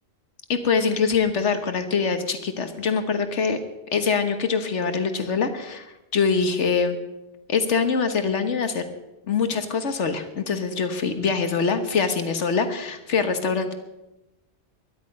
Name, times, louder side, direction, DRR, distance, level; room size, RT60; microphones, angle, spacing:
voice 1, 0.5-3.6 3.9-7.0 7.5-8.8 9.3-13.7, left 5 dB, 75° left, 8 dB, 1.5 m, -24 dB
22.0 x 10.5 x 5.3 m, 0.99 s
omnidirectional pair, 1.2 m